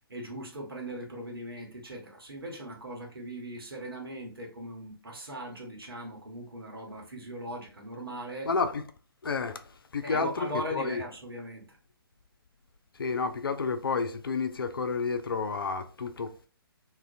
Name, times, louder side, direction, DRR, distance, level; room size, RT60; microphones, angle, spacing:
voice 1, 0.1-8.5 10.0-11.8, equal, 70° right, 0.9 m, -39 dB
voice 2, 8.4-8.8 9.2-11.0 12.9-16.3, left 4 dB, 65° left, 0.4 m, -30 dB
2.4 x 2.1 x 2.4 m
figure-of-eight pair, 130°, 13 cm